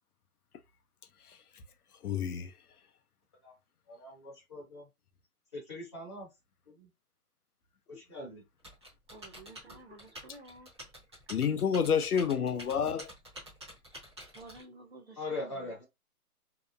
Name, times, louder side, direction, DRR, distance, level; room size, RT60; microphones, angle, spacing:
voice 1, 2.0-2.5 11.3-13.1, left 7 dB, 75° left, 0.6 m, -29 dB
voice 2, 3.9-4.9 5.5-6.3 6.7-6.9 7.9-8.4 15.2-15.8, left 2 dB, 20° left, 0.9 m, -41 dB
Typing, 8.6-14.6, right 1 dB, 20° right, 0.9 m, -49 dB
voice 3, 9.1-10.7 14.3-15.7, right 2 dB, 45° right, 0.6 m, -52 dB
2.8 x 2.0 x 2.4 m
hypercardioid pair, 170°, 46 cm